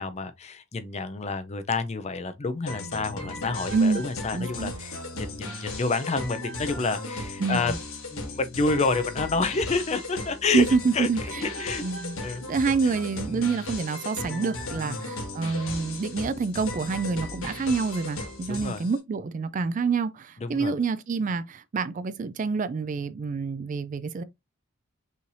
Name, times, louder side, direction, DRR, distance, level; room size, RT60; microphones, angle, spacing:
voice 1, 0.0-7.7 8.1-10.7 10.9-11.1 11.4-11.9 12.2-12.4 13.3-13.4 14.8-15.0 18.5-18.8 20.4-20.7, left 3 dB, 30° left, 0.5 m, -29 dB
sound 1, 2.7-19.0, left 2 dB, 75° left, 1.7 m, -36 dB
voice 2, 4.3-4.7 7.4-7.8 10.5-11.4 11.8-12.2 12.5-24.2, right 4 dB, 40° right, 0.3 m, -27 dB
5.5 x 3.2 x 2.6 m
head